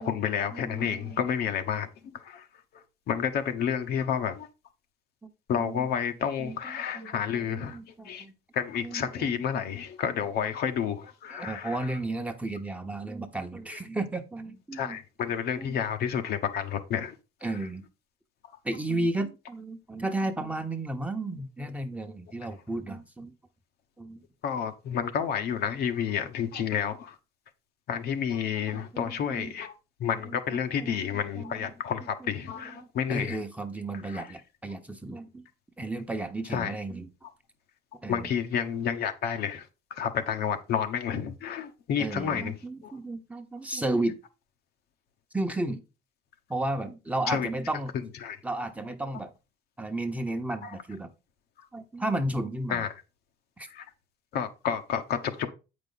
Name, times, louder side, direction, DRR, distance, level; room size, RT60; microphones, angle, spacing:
voice 1, 0.0-2.5 2.7-4.5 5.5-8.2 8.5-11.9 13.7-13.8 14.7-17.2 24.4-27.2 27.9-29.7 30.0-33.4 34.0-34.3 36.5-36.7 38.1-42.6 42.8-42.9 47.3-47.5 48.2-48.4 50.6-50.7 52.7-52.9 53.7-53.9 54.3-55.5, left 8 dB, 70° left, 1.1 m, -30 dB
voice 2, 0.5-1.2 5.2-5.9 6.4-8.3 8.8-9.4 11.3-15.0 15.5-15.8 17.4-17.8 18.6-23.3 24.0-24.2 28.7-29.5 30.2-31.7 32.2-32.3 32.8-35.4 35.8-37.1 38.0-38.3 42.0-44.2 45.3-45.8 46.5-47.9 48.4-49.3 49.8-51.1 51.7-52.8 53.6-53.7, right 2 dB, 10° right, 1.0 m, -33 dB
8.1 x 5.2 x 4.0 m
cardioid pair, 110°, 17 cm